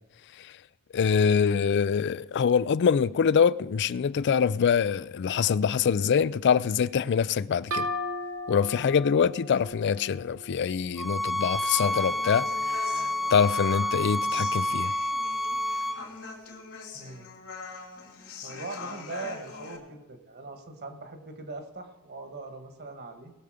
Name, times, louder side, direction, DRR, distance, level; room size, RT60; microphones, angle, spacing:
voice 1, 0.9-7.9 8.5-14.9, left 6 dB, 55° left, 0.4 m, -24 dB
sound 1, 7.7-11.3, left 1 dB, 75° right, 2.3 m, -36 dB
sound 2, 11.0-16.0, left 1 dB, ahead, 0.6 m, -29 dB
Human voice, 11.8-19.8, left 4 dB, 75° left, 3.3 m, -43 dB
voice 2, 16.9-17.3 18.4-23.3, right 3 dB, 50° right, 1.6 m, -41 dB
19.5 x 6.9 x 5.0 m
head